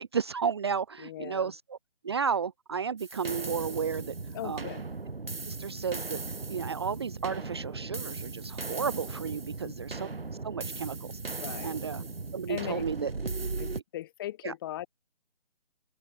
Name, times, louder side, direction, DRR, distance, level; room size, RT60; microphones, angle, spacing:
voice 1, 0.0-1.8 2.0-4.1 4.4-4.7 5.5-6.2 6.5-10.1 10.4-12.0 12.3-13.1 14.4-14.5, right 6 dB, 25° right, 1.0 m, -33 dB
voice 2, 1.0-1.5 4.3-4.9 9.6-9.7 11.4-11.7 12.5-12.9 13.6-14.9, left 14 dB, 20° left, 3.4 m, -39 dB
sound 1, 3.0-13.8, right 3 dB, 60° right, 7.2 m, -37 dB
open air
figure-of-eight pair, 150°, 33 cm